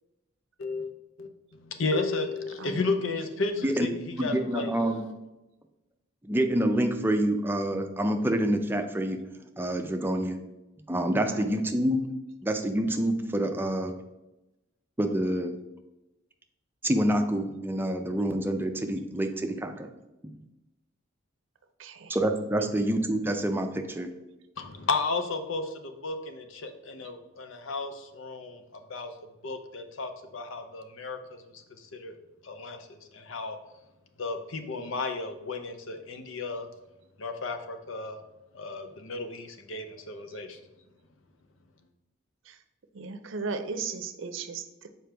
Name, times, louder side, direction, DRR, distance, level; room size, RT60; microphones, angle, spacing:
voice 1, 0.6-0.9 1.2-4.7 24.6-28.6 28.9-29.1 29.4-31.6 31.9-32.2 32.4-33.6 34.2-36.7 37.2-38.2 38.5-40.6, left 3 dB, 75° left, 7 dB, 0.7 m, -33 dB
voice 2, 2.6-3.2 3.5-3.7 11.3-11.7 21.8-22.2 22.6-22.7 40.3-40.4 42.4-42.6 42.9-44.9, right 4 dB, 70° right, 9 dB, 0.6 m, -37 dB
voice 3, 4.1-5.1 6.2-9.2 9.6-10.4 10.9-12.0 12.4-13.9 15.0-15.6 16.8-19.9 22.1-24.1, right 1 dB, 10° right, 5 dB, 0.5 m, -27 dB
6.6 x 4.5 x 3.4 m, 0.99 s
head